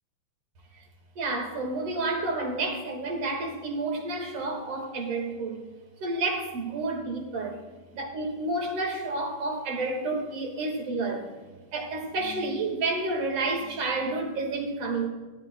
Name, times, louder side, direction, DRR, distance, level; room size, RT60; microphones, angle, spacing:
voice 1, 1.2-5.6 6.0-7.6 8.0-11.3 11.7-15.1, right 2 dB, 50° right, 2.5 m, -30 dB
22.5 x 12.0 x 2.2 m
omnidirectional pair, 4.0 m